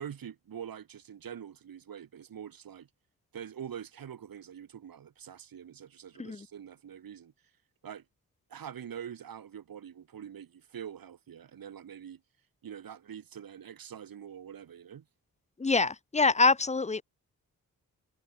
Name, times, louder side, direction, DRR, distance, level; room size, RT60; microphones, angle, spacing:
voice 1, 0.0-2.9 3.3-7.3 7.8-8.0 8.5-12.2 12.6-15.0, right 8 dB, 90° right, 4.2 m, -44 dB
voice 2, 15.6-17.0, left 3 dB, 20° left, 0.8 m, -25 dB
wide cardioid pair, 175°, 34 cm